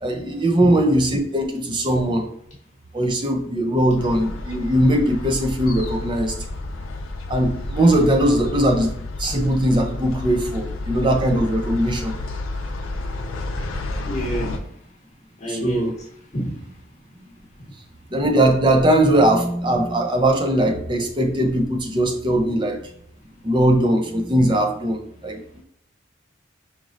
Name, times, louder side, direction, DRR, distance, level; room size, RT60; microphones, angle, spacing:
voice 1, 0.0-2.3 2.9-6.3 7.3-8.9 9.2-12.2 15.5-15.9 18.1-22.8 23.4-25.6, right 1 dB, 25° right, 4 dB, 0.5 m, -20 dB
sound 1, 4.0-14.6, left 2 dB, 85° left, 0.5 m, -30 dB
voice 2, 14.1-14.6 15.4-15.9 16.3-16.6, right 1 dB, 35° left, -5 dB, 0.8 m, -27 dB
5.1 x 3.0 x 2.5 m, 0.69 s
head